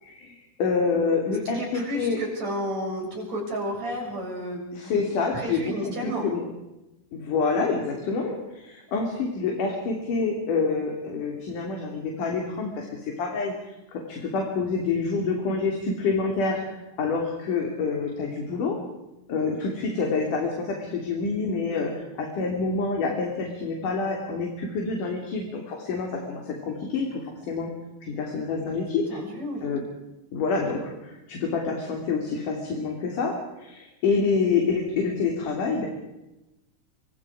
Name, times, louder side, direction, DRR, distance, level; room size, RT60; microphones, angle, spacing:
voice 1, 0.0-2.2 4.7-6.4 7.1-18.8 19.3-27.7 28.0-29.2 29.6-29.8 30.3-35.9, left 4 dB, 55° left, 1 dB, 4.5 m, -27 dB
voice 2, 1.5-6.3 28.1-28.2 29.1-29.7, equal, 45° right, 0 dB, 8.0 m, -32 dB
28.5 x 25.0 x 5.0 m, 0.97 s
omnidirectional pair, 4.5 m